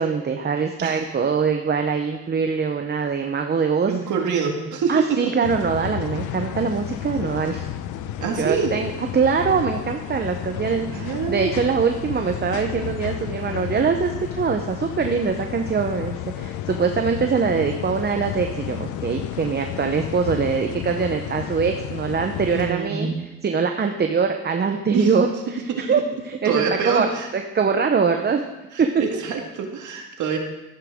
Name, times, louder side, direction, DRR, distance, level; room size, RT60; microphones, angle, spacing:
voice 1, 0.0-4.0 4.9-7.7 8.2-23.1 23.4-27.1 27.3-28.4 28.8-28.9, right 5 dB, 35° right, 5 dB, 0.8 m, -23 dB
voice 2, 3.9-5.3 8.2-8.7 10.9-11.5 22.5-23.2 24.9-25.1 25.7-25.9 26.5-27.3 28.7-30.4, right 6 dB, 75° right, 2 dB, 2.0 m, -25 dB
sound 1, 5.4-22.7, left 11 dB, 85° left, 0.7 m, -32 dB
13.5 x 9.9 x 3.7 m, 1.0 s
cardioid pair, 90°, 30 cm